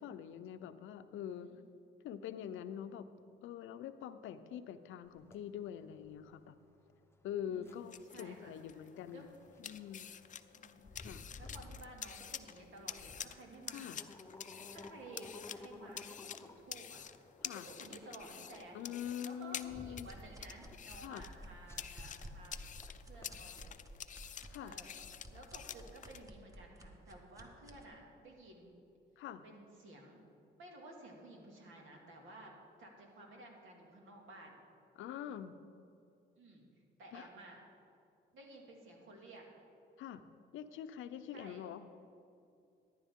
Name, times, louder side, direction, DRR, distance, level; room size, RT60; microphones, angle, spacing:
voice 1, 0.0-1.5 2.0-3.1 3.4-6.6 7.2-9.3 9.6-10.1 11.0-11.2 13.7-14.0 17.4-17.7 18.7-20.1 21.0-21.2 24.5-24.7 29.2-29.4 35.0-35.6 37.1-37.3 40.0-40.2 40.5-41.8, left 9 dB, 85° left, 11 dB, 0.6 m, -44 dB
sound 1, 5.1-23.9, left 2 dB, 10° left, 0.8 m, -56 dB
voice 2, 7.4-9.3 10.5-11.1 11.4-14.0 14.7-18.8 19.2-22.6 23.0-23.6 24.6-24.9 25.3-28.7 29.4-30.2 30.6-32.5 32.8-34.6 36.4-36.7 37.0-37.6 38.3-39.5 41.3-41.6, right 2 dB, 80° right, 0 dB, 2.3 m, -54 dB
sound 2, 7.7-26.2, left 8 dB, 40° left, 0.5 m, -49 dB
sound 3, 20.0-27.9, right 1 dB, 15° right, 1.1 m, -53 dB
13.5 x 11.0 x 3.7 m, 2.5 s
cardioid pair, 90°, 20 cm